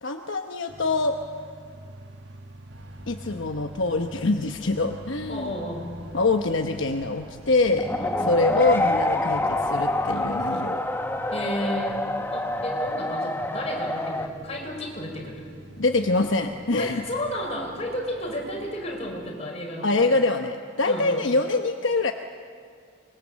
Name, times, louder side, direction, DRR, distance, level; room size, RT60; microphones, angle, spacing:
voice 1, 0.0-1.2 3.1-5.5 6.1-7.9 8.3-10.8 15.8-17.0 19.8-22.1, left 3 dB, 65° left, 4 dB, 1.0 m, -24 dB
sound 1, 0.7-19.3, right 1 dB, 55° right, 1.6 m, -47 dB
sound 2, 2.7-10.5, right 1 dB, 80° right, 2.7 m, -50 dB
voice 2, 5.3-5.9 8.0-8.6 11.3-12.0 12.3-15.5 16.7-20.1 20.8-21.2, equal, 30° left, 0 dB, 5.2 m, -32 dB
sound 3, 7.7-14.3, left 1 dB, 10° left, 1.0 m, -26 dB
25.0 x 21.5 x 7.5 m, 2.2 s
head